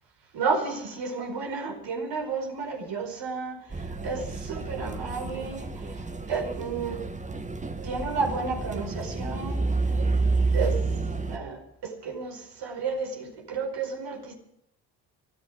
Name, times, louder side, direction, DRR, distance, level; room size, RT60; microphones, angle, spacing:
voice 1, 0.3-6.0 6.3-7.1 7.8-9.7 10.5-10.8 11.3-14.4, right 4 dB, 55° right, 3 dB, 5.0 m, -32 dB
sound 1, 3.7-11.4, right 3 dB, 15° right, 1.7 m, -29 dB
24.5 x 15.0 x 3.7 m, 0.73 s
figure-of-eight pair, 50°, 49 cm